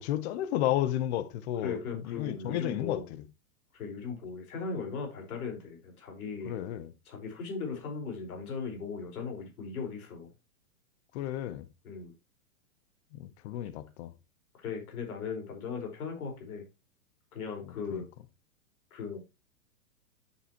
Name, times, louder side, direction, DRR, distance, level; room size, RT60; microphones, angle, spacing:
voice 1, 0.0-1.8 2.1-3.0 6.5-6.9 11.1-11.6 13.1-14.1 17.9-18.0, left 12 dB, 45° left, 1.0 m, -32 dB
voice 2, 1.6-3.1 3.7-6.6 7.0-10.3 11.8-12.1 14.6-16.6 17.3-18.1 18.9-19.2, left 5 dB, 75° left, 5.1 m, -38 dB
10.0 x 6.8 x 3.0 m
hypercardioid pair, 130°, 44 cm